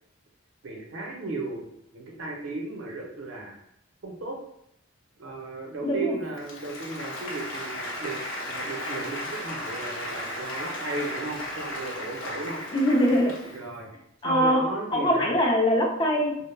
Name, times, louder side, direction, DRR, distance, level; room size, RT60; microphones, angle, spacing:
voice 1, 0.6-1.7 1.9-3.6 4.0-4.4 5.2-8.2 8.4-12.6 13.5-13.9 14.2-15.4, right 2 dB, 70° right, -1 dB, 0.6 m, -35 dB
voice 2, 5.8-6.2 12.7-13.5 14.2-14.6 14.9-16.4, equal, 25° left, 0 dB, 0.4 m, -23 dB
Applause, 6.3-13.7, left 1 dB, 70° left, 0.6 m, -35 dB
2.2 x 2.0 x 3.1 m, 0.74 s
head